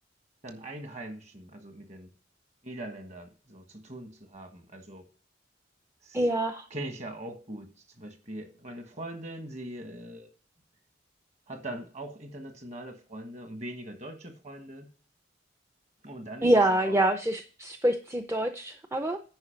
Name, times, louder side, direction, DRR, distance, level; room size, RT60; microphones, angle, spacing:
voice 1, 0.4-2.1 2.6-5.1 6.0-6.2 6.7-10.3 11.5-14.9 16.0-17.0, right 1 dB, 40° right, 7 dB, 1.5 m, -41 dB
voice 2, 6.1-6.7 16.4-19.2, right 1 dB, 15° right, 7 dB, 0.5 m, -26 dB
9.7 x 5.0 x 5.1 m, 0.40 s
head